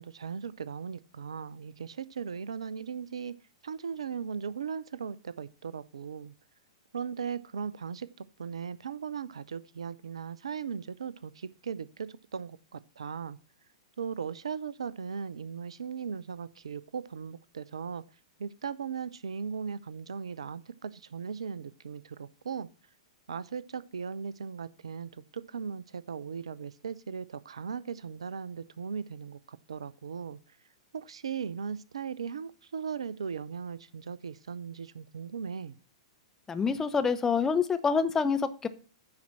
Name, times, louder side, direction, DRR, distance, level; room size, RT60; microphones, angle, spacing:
voice 1, 0.0-3.3 3.6-6.3 6.9-13.4 14.0-18.0 18.4-22.7 23.3-30.6 30.9-35.8, right 6 dB, 65° right, 0.5 m, -38 dB
voice 2, 36.5-38.7, left 5 dB, 15° left, 0.8 m, -27 dB
9.8 x 4.3 x 7.3 m
figure-of-eight pair, 105°, 3 cm